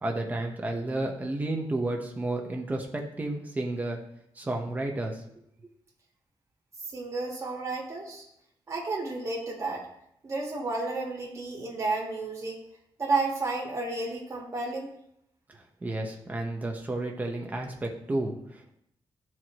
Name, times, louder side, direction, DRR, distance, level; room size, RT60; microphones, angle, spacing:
voice 1, 0.0-4.0 4.4-5.2 15.5-18.7, right 2 dB, 15° right, 0 dB, 1.1 m, -32 dB
voice 2, 6.9-8.2 8.7-9.9 10.2-12.6 13.0-14.9, right 3 dB, 30° right, -2 dB, 1.7 m, -31 dB
13.5 x 4.7 x 3.1 m, 0.76 s
wide cardioid pair, 170°, 10 cm